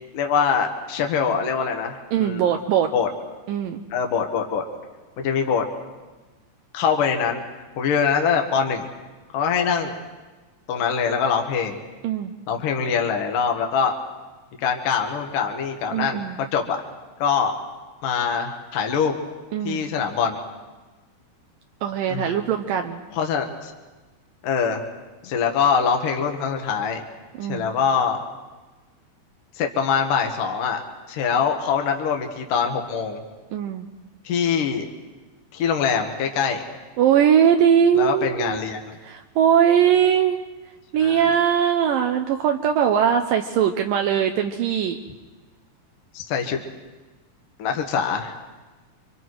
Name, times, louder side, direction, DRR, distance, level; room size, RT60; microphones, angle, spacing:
voice 1, 0.1-2.6 2.9-3.1 3.9-4.6 5.2-5.6 6.7-7.4 7.8-8.9 9.3-10.0 10.7-11.8 12.5-13.9 14.6-16.2 16.5-16.8 17.2-17.5 18.0-19.1 19.6-20.4 22.1-22.4 23.1-23.7 24.4-24.8 25.2-27.0 27.5-28.2 29.6-30.8 31.1-33.2 34.2-34.9 35.5-36.6 37.9-38.8 41.0-41.3 46.1-46.6 47.6-48.4, left 6 dB, 65° left, 3 dB, 3.0 m, -23 dB
voice 2, 2.1-2.9 3.5-3.8 12.0-12.3 15.9-16.4 19.5-19.8 21.8-23.0 27.4-27.7 33.5-33.9 37.0-38.6 39.0-40.4 40.9-45.0, right 9 dB, 75° right, 5 dB, 2.4 m, -20 dB
28.0 x 24.5 x 4.7 m, 1.2 s
omnidirectional pair, 4.2 m